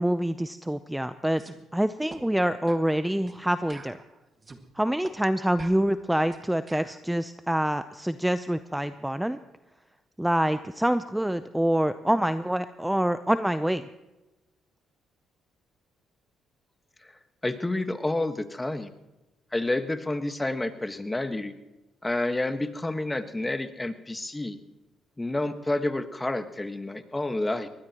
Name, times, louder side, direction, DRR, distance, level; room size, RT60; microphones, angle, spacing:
voice 1, 0.0-1.4 1.7-4.0 4.8-9.4 10.2-13.9, right 1 dB, 5° right, 11 dB, 0.6 m, -26 dB
sound 1, 1.4-1.6 2.1-2.2 2.7-2.9 3.3-3.4 3.7-4.6 5.0-5.2 5.6-7.0, right 3 dB, 30° right, 1.9 m, -46 dB
voice 2, 17.4-18.9 19.5-21.5 22.0-24.6 25.2-27.7, left 2 dB, 15° left, 8 dB, 1.5 m, -29 dB
22.0 x 19.0 x 3.0 m, 1.1 s
supercardioid pair, 65°, 0 cm